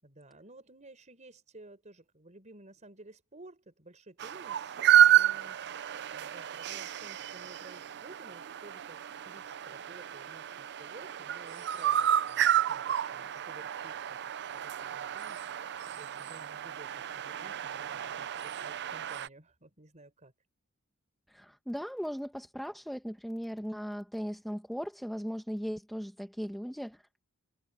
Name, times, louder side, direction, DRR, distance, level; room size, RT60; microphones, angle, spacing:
voice 1, 0.0-20.3, right 2 dB, 35° right, 4.9 m, -54 dB
sound 1, 4.2-19.3, right 11 dB, 50° right, 0.5 m, -30 dB
voice 2, 21.3-27.2, equal, ahead, 1.3 m, -38 dB
head